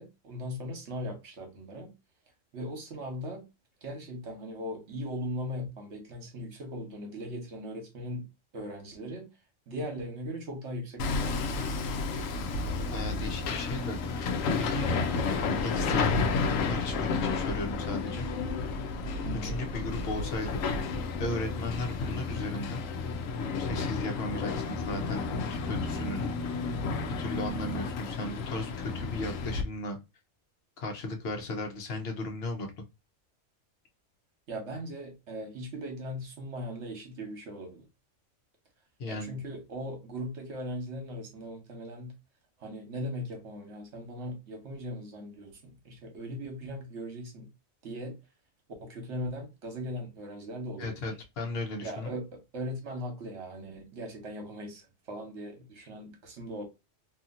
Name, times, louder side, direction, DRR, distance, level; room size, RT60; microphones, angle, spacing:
voice 1, 0.0-1.9 2.5-3.4 3.8-8.3 8.5-9.3 9.7-11.7 19.2-19.5 34.5-37.9 39.1-42.1 42.6-47.5 47.8-48.2 48.8-51.2 51.8-56.6, equal, 65° right, 1.2 m, -39 dB
Hammer, 11.0-29.6, left 4 dB, 80° left, 1.0 m, -31 dB
voice 2, 12.9-14.9 15.6-16.2 16.7-18.3 19.4-20.6 21.2-22.8 23.6-26.6 27.1-30.0 30.8-32.8 39.0-39.4 50.8-52.1, left 2 dB, 55° left, 1.0 m, -36 dB
2.8 x 2.8 x 2.5 m
omnidirectional pair, 1.3 m